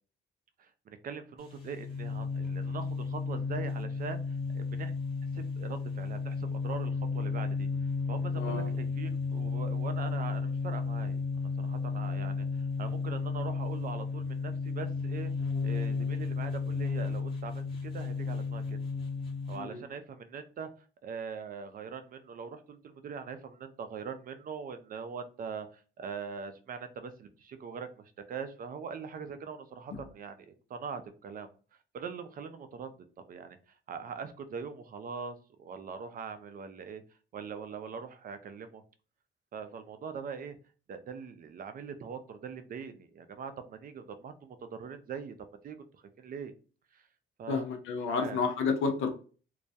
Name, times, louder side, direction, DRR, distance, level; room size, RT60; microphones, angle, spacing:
voice 1, 0.6-4.9 5.3-7.7 8.1-15.3 15.6-18.8 19.5-20.7 21.0-31.5 31.9-32.9 33.3-37.0 37.3-38.8 39.5-40.6 40.9-45.3 45.6-46.5 46.9-47.1 47.4-47.7 48.1-48.4, right 6 dB, 45° right, 9 dB, 0.4 m, -42 dB
sound 1, 1.4-19.6, left 4 dB, 25° left, 0.9 m, -33 dB
voice 2, 8.3-8.7 19.5-19.8 29.9-30.0 47.5-49.1, left 5 dB, 80° left, 6 dB, 0.6 m, -31 dB
2.2 x 2.1 x 2.6 m, 0.38 s
cardioid pair, 90°, 20 cm